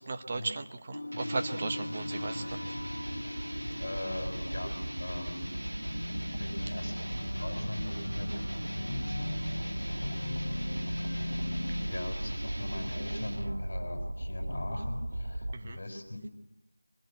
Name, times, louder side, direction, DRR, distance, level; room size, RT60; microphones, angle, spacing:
voice 1, 0.0-2.7 15.5-15.8, right 3 dB, 20° right, 7 dB, 0.9 m, -36 dB
sound 1, 0.9-11.9, left 1 dB, 65° left, 1.7 m, -40 dB
sound 2, 1.1-13.6, right 1 dB, 90° right, 1.8 m, -41 dB
sound 3, 1.8-15.5, right 1 dB, 55° right, 2.5 m, -38 dB
voice 2, 3.8-5.5 6.4-10.6 11.8-16.3, left 1 dB, 35° left, 4 dB, 5.8 m, -40 dB
24.0 x 17.5 x 8.9 m, 0.93 s
figure-of-eight pair, 175°, 0 cm